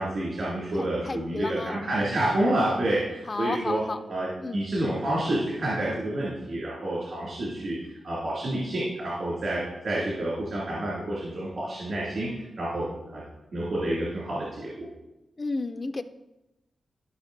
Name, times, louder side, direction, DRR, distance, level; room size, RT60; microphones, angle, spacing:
voice 1, 0.0-7.8 8.0-13.2 13.5-14.9, right 1 dB, 65° right, -7 dB, 2.6 m, -29 dB
voice 2, 0.7-1.9 3.3-4.0 4.4-4.6 15.4-16.0, left 3 dB, 30° left, 10 dB, 0.4 m, -32 dB
14.5 x 5.8 x 2.6 m, 0.97 s
wide cardioid pair, 140°, 0 cm